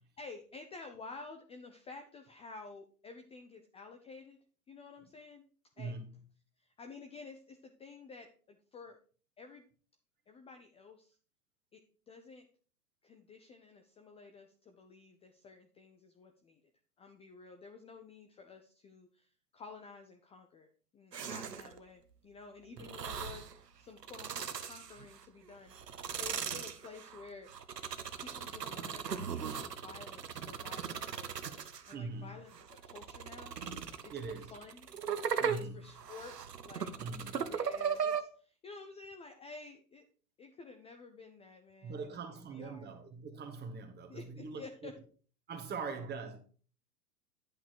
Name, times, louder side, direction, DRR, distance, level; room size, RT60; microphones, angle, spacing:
voice 1, 0.2-4.4 4.7-5.5 5.8-6.0 6.6-9.0 9.4-9.7 10.3-11.2 11.7-11.8 12.1-12.5 13.0-16.6 17.0-27.5 28.2-31.3 31.9-32.5 32.8-33.6 34.0-34.9 35.5-36.4 36.6-36.9 37.3-40.0 40.4-42.2 42.5-42.9 44.1-44.9, left 4 dB, 15° left, 0.6 m, -51 dB
voice 2, 5.8-6.1 22.8-22.9 31.9-32.3 34.1-34.5 35.4-35.8 37.0-37.5 41.8-44.9 45.5-46.4, right 4 dB, 20° right, 1.6 m, -42 dB
sound 1, 21.1-21.8 22.8-23.5 24.0-25.2 25.7-32.0 32.5-38.2, right 7 dB, 85° right, 1.0 m, -38 dB
10.0 x 5.9 x 4.6 m
hypercardioid pair, 105°, 47 cm